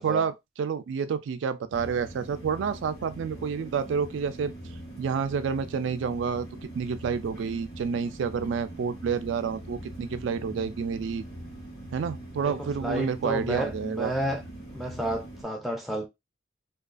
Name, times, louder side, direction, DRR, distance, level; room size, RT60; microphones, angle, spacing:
voice 1, 0.0-4.5 5.0-6.5 6.7-11.2 11.9-14.1, right 6 dB, 85° right, 0.3 m, -29 dB
sound 1, 1.7-15.4, right 1 dB, 60° left, 1.2 m, -42 dB
voice 2, 3.4-3.7 12.4-12.6 12.8-14.4 14.7-16.1, equal, ahead, 0.4 m, -31 dB
2.3 x 2.3 x 2.4 m
head